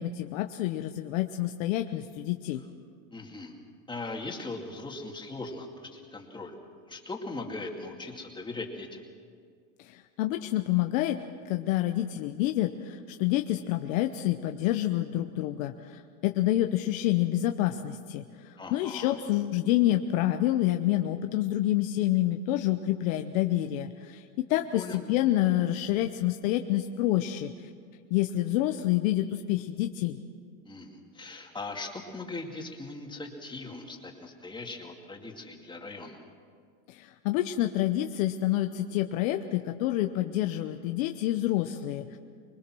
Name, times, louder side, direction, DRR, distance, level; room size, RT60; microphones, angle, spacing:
voice 1, 0.0-2.6 9.8-11.2 11.4-27.7 28.1-30.2 36.9-42.2, left 14 dB, 70° left, 6 dB, 1.0 m, -28 dB
voice 2, 3.1-3.5 3.9-6.5 6.9-9.0 18.6-19.2 24.7-25.0 30.6-36.2, left 3 dB, 10° left, 1 dB, 2.3 m, -39 dB
25.5 x 20.5 x 6.2 m, 2.1 s
supercardioid pair, 145°, 41 cm